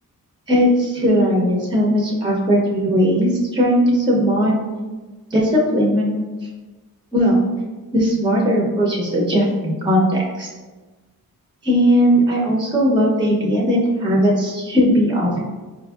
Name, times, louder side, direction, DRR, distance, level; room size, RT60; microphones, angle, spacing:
voice 1, 0.5-4.6 5.3-6.1 7.1-7.4 7.9-10.5 11.6-15.4, equal, 15° right, -3 dB, 0.6 m, -18 dB
4.3 x 2.5 x 2.3 m, 1.3 s
wide cardioid pair, 95°, 36 cm